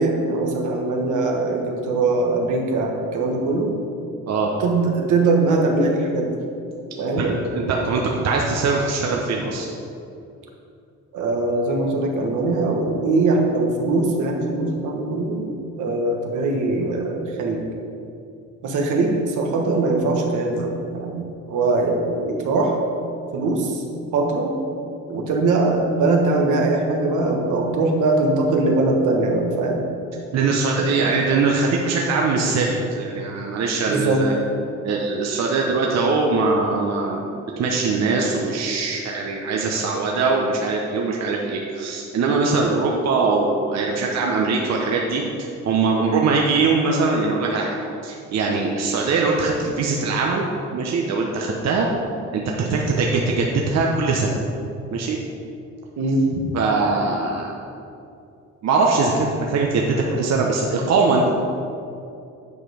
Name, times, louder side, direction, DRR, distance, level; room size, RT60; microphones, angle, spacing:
voice 1, 0.0-3.7 4.6-6.3 7.0-7.3 11.1-15.5 15.8-17.6 18.6-22.7 23.3-23.8 24.1-24.6 25.1-29.8 30.8-31.1 33.9-34.3 56.0-56.3, right 2 dB, 80° right, 1 dB, 1.4 m, -21 dB
voice 2, 7.2-9.7 30.3-32.7 33.0-34.3 34.8-47.8 48.0-50.4 50.7-51.9 52.3-54.3 54.9-55.2 56.5-57.6 58.6-61.3, right 4 dB, 60° right, -1 dB, 0.9 m, -22 dB
8.8 x 5.0 x 5.0 m, 2.6 s
cardioid pair, 90°, 30 cm